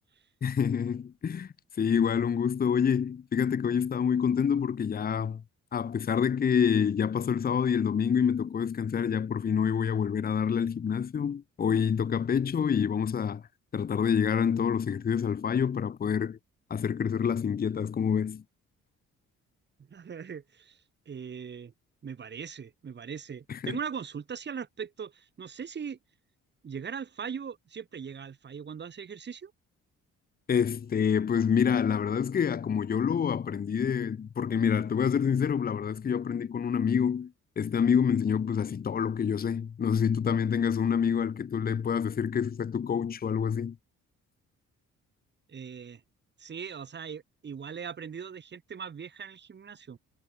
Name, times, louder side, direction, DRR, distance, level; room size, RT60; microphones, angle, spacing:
voice 1, 0.4-1.5 1.8-5.4 5.7-13.4 13.7-16.4 16.7-18.4 23.5-23.8 30.5-43.8, left 7 dB, 30° left, 0.7 m, -27 dB
voice 2, 19.9-20.8 21.1-21.7 22.0-26.0 26.6-29.5 45.5-46.0 46.4-50.0, right 7 dB, 35° right, 1.3 m, -40 dB
cardioid pair, 90°, 30 cm